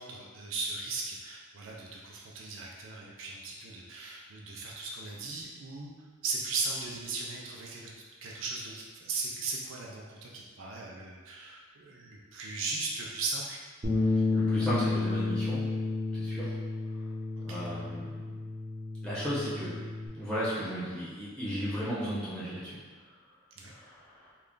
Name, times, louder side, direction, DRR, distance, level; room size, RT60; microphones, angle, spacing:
voice 1, 0.0-5.9 6.2-7.9 8.2-13.6 17.4-17.6 23.6-23.7, right 3 dB, 65° right, -2 dB, 0.5 m, -37 dB
Bass guitar, 13.8-20.1, left 3 dB, 30° right, 0.7 m, -31 dB
voice 2, 14.0-15.6 16.1-16.5 17.4-18.3 19.0-19.8 20.1-22.8 23.7-24.3, equal, 5° left, -11 dB, 1.1 m, -35 dB
3.2 x 2.4 x 3.7 m, 1.5 s
head